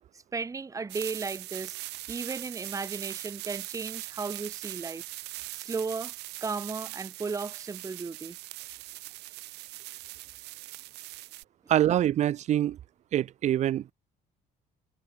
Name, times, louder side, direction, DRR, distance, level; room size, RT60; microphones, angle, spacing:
voice 1, 0.3-1.8 2.1-5.0 5.5-6.1 6.4-8.4, right 4 dB, 20° right, 0.9 m, -35 dB
sound 1, 0.9-11.4, right 19 dB, 85° right, 1.0 m, -41 dB
voice 2, 11.7-12.8 13.1-13.9, right 12 dB, 45° right, 0.4 m, -25 dB
cardioid pair, 110°, 17 cm